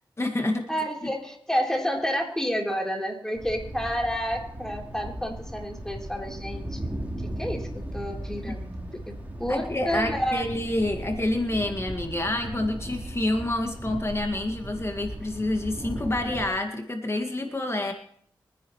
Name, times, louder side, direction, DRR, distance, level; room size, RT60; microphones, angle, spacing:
voice 1, 0.2-0.7 1.0-1.1 9.5-17.9, left 1 dB, 30° left, 4 dB, 2.0 m, -28 dB
voice 2, 0.7-6.8 7.4-7.7 7.9-8.7 9.1-9.2 9.4-10.4, equal, 5° left, 0 dB, 3.7 m, -29 dB
Thunder, 3.3-16.5, right 1 dB, 20° right, 3.8 m, -37 dB
24.5 x 10.5 x 3.2 m, 0.63 s
cardioid pair, 55°, 8 cm